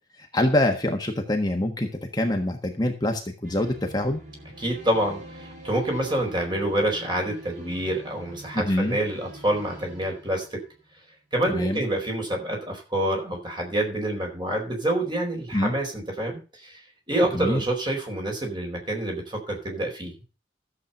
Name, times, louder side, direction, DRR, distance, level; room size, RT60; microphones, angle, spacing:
voice 1, 0.2-4.2 8.5-9.0 11.5-11.8 15.5-15.7 17.3-17.6, left 1 dB, 25° left, 3 dB, 1.4 m, -25 dB
sound 1, 3.4-10.9, right 1 dB, 45° right, 5.9 m, -45 dB
voice 2, 4.6-10.6 11.3-16.8 17.1-20.1, right 1 dB, 25° right, 2 dB, 4.4 m, -27 dB
13.5 x 7.7 x 5.4 m, 0.34 s
head